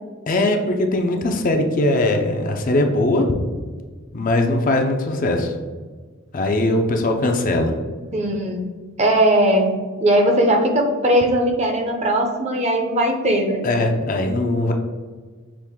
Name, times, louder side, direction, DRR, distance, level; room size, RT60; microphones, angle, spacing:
voice 1, 0.3-3.3 4.1-5.5 6.3-7.7 13.6-14.7, left 2 dB, 40° left, 4 dB, 0.4 m, -20 dB
voice 2, 8.1-8.6 9.0-13.7, right 1 dB, 30° right, 3 dB, 0.6 m, -19 dB
6.0 x 2.5 x 3.5 m, 1.5 s
head